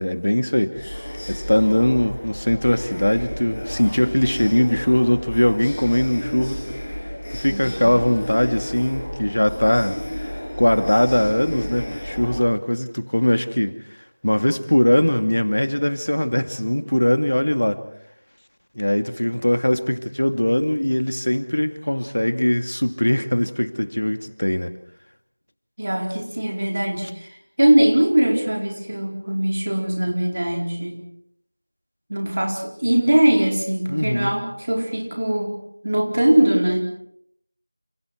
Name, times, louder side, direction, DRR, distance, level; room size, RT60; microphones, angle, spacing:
voice 1, 0.0-6.7 7.3-10.3 10.6-13.8 14.2-17.8 18.8-24.7 33.9-34.4, left 1 dB, 60° left, 9 dB, 2.3 m, -21 dB
sound 1, 0.7-12.4, equal, 10° left, 5.9 m, -32 dB
voice 2, 7.5-8.0 25.8-27.3 27.6-31.0 32.1-37.0, right 1 dB, 35° right, 2 dB, 4.5 m, -21 dB
29.5 x 28.5 x 4.6 m, 0.68 s
figure-of-eight pair, 180°, 0 cm